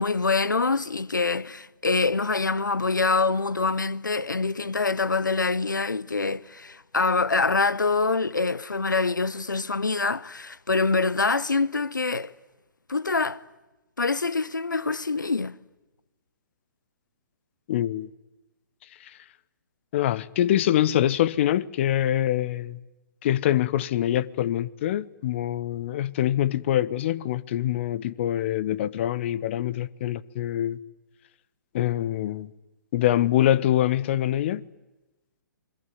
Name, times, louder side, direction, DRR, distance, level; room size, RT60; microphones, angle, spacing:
voice 1, 0.0-12.3 12.9-13.4 14.0-15.6, left 3 dB, 75° left, 1.0 m, -25 dB
voice 2, 17.7-18.1 19.0-19.1 19.9-22.8 23.2-30.8 31.7-32.5 32.9-34.6, left 12 dB, 40° left, 0.9 m, -24 dB
27.5 x 22.0 x 9.5 m
figure-of-eight pair, 125°, 10 cm